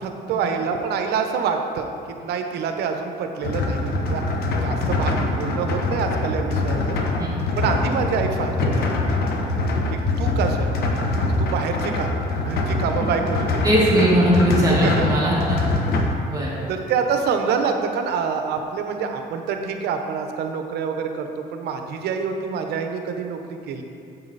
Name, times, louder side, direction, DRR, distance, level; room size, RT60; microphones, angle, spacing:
voice 1, 0.0-1.9 2.2-4.2 4.6-6.9 7.6-8.9 9.9-10.7 11.0-11.1 11.4-13.7 14.7-15.1 16.0-16.1 16.7-23.4 23.7-23.8, right 6 dB, 75° right, 5 dB, 0.9 m, -26 dB
sound 1, 3.4-16.0, left 2 dB, 65° left, 1.1 m, -24 dB
voice 2, 13.6-15.6 16.2-16.6, equal, 20° right, -6 dB, 2.2 m, -19 dB
8.8 x 7.6 x 4.1 m, 2.5 s
cardioid pair, 110°, 17 cm